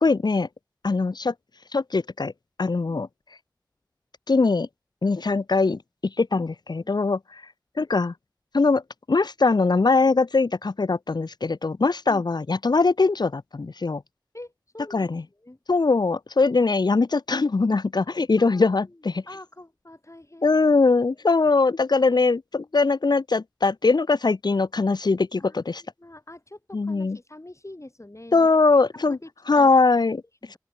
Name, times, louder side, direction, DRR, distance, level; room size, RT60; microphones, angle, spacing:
voice 1, 0.0-0.5 0.8-1.3 1.7-2.3 2.6-3.1 4.3-4.7 5.0-5.8 6.2-7.4 7.8-8.1 8.5-8.8 9.1-14.0 14.9-15.2 15.7-19.2 20.4-25.8 26.7-27.2 28.3-29.2 29.5-30.2, left 3 dB, 85° left, 0.5 m, -21 dB
voice 2, 14.3-15.6 18.0-18.1 18.4-20.6 21.2-21.5 25.4-29.3 29.5-29.7 30.4-30.6, left 1 dB, 45° left, 6.2 m, -45 dB
open air
wide cardioid pair, 40°, 7 cm